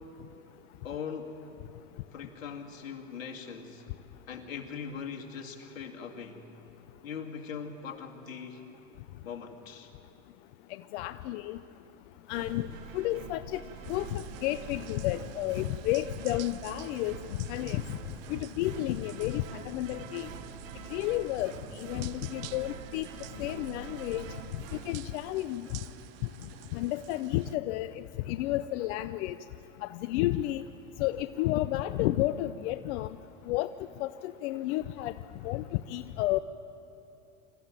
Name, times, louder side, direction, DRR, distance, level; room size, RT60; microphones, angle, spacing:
voice 1, 0.8-1.3 2.1-3.8 4.3-6.5 7.0-8.7 9.2-9.9, left 6 dB, 90° left, 2 dB, 2.4 m, -40 dB
voice 2, 10.9-11.6 12.3-12.7 12.9-13.6 13.9-17.1 17.5-18.0 18.3-20.3 20.9-23.1 23.4-24.2 24.9-25.7 26.7-29.4 29.8-30.6 31.0-33.1 33.5-33.7 34.0-35.1 35.4-36.4, left 15 dB, 60° left, 12 dB, 0.7 m, -31 dB
sound 1, 12.3-25.9, right 6 dB, 80° right, 1.7 m, -46 dB
sound 2, 13.8-27.6, right 16 dB, 40° right, 0.6 m, -50 dB
26.0 x 14.5 x 9.0 m, 2.8 s
hypercardioid pair, 105°, 39 cm